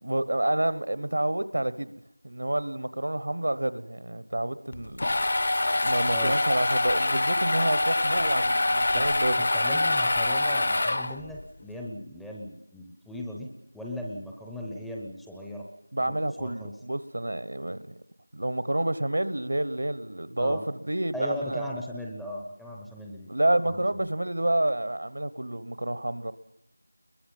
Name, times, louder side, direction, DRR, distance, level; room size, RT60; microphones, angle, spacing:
voice 1, 0.0-1.9 2.2-5.1 5.8-9.3 15.9-18.0 18.3-21.7 23.3-26.3, right 1 dB, 60° right, 1.2 m, -29 dB
sound 1, 4.7-11.4, left 2 dB, 40° left, 0.9 m, -25 dB
voice 2, 9.4-13.5 13.7-15.6 16.0-16.7 20.4-20.6 21.1-23.3 23.6-24.1, equal, ahead, 0.7 m, -38 dB
28.5 x 22.0 x 5.5 m
figure-of-eight pair, 175°, 0 cm